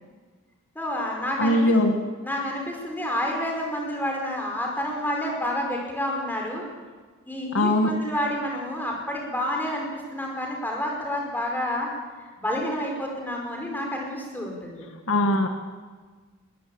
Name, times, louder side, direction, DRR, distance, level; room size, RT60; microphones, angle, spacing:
voice 1, 0.8-1.7 2.2-6.6 7.3-11.9 12.4-14.9, left 1 dB, 10° left, 0 dB, 5.2 m, -29 dB
voice 2, 1.4-1.9 7.5-7.9 15.1-15.5, left 1 dB, 65° left, 5 dB, 1.9 m, -20 dB
21.5 x 20.0 x 8.8 m, 1.5 s
head